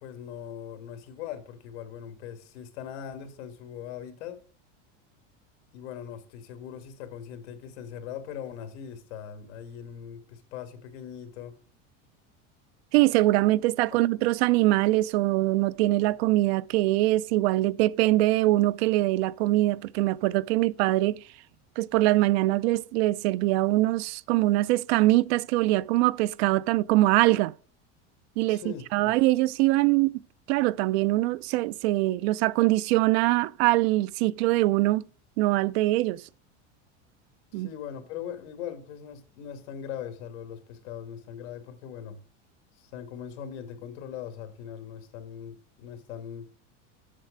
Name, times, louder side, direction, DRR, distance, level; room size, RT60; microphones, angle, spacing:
voice 1, 0.0-4.4 5.7-11.6 28.5-29.1 37.5-42.2 42.8-46.5, left 8 dB, 70° left, 1.9 m, -40 dB
voice 2, 12.9-21.2 21.8-27.5 28.4-28.6 28.9-30.2 30.5-35.1 35.4-36.2 37.5-37.7, right 18 dB, 60° right, 0.5 m, -23 dB
7.5 x 6.6 x 4.9 m
supercardioid pair, 165°, 36 cm